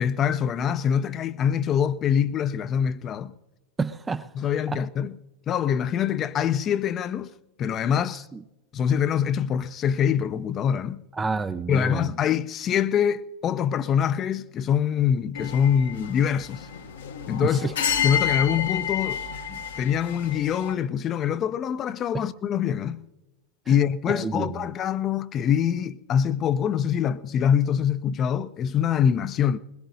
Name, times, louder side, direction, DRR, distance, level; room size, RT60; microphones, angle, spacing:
voice 1, 0.0-3.3 4.4-5.2 5.5-7.3 7.6-8.3 8.7-11.0 11.7-16.7 17.3-17.7 18.0-19.2 19.5-23.1 23.7-29.6, left 8 dB, 35° left, 0.6 m, -24 dB
voice 2, 3.8-4.3 4.7-4.8 8.3-8.4 11.2-12.1 17.4-17.7 22.1-22.3 23.7-23.8 24.1-24.6, right 4 dB, 15° right, 0.5 m, -29 dB
sound 1, 15.3-20.7, left 8 dB, 70° left, 1.1 m, -30 dB
22.0 x 21.0 x 2.7 m
figure-of-eight pair, 90°, 0 cm